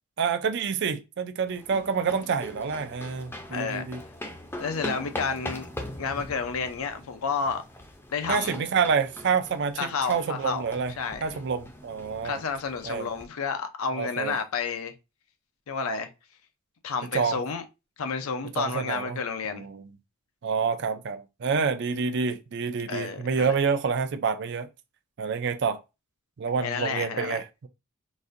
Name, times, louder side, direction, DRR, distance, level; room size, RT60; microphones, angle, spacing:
voice 1, 0.2-4.0 8.3-10.9 11.2-12.4 12.8-13.1 13.9-14.4 17.1-17.4 18.6-19.2 19.5-19.9 20.4-24.7 25.2-25.8 26.4-27.7, right 5 dB, 55° right, 0.4 m, -28 dB
sound 1, 1.5-13.3, left 1 dB, 10° left, 0.5 m, -41 dB
voice 2, 3.5-3.9 4.6-5.7 6.0-7.6 8.1-8.6 9.8-10.7 11.0-11.2 12.2-14.9 15.7-16.1 16.8-17.6 18.0-19.7 22.9-23.5 26.6-27.4, left 5 dB, 80° left, 0.6 m, -30 dB
4.1 x 2.5 x 2.5 m
head